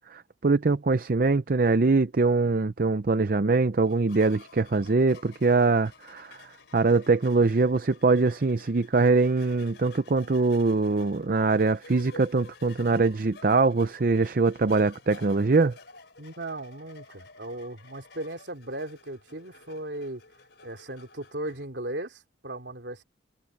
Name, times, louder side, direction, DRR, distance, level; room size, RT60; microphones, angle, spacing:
voice 1, 0.0-6.4 6.7-15.8, right 3 dB, 50° right, 0.6 m, -23 dB
sound 1, 3.9-21.6, left 4 dB, 65° left, 4.3 m, -52 dB
voice 2, 16.2-20.2 20.6-23.0, right 1 dB, 65° right, 3.3 m, -37 dB
head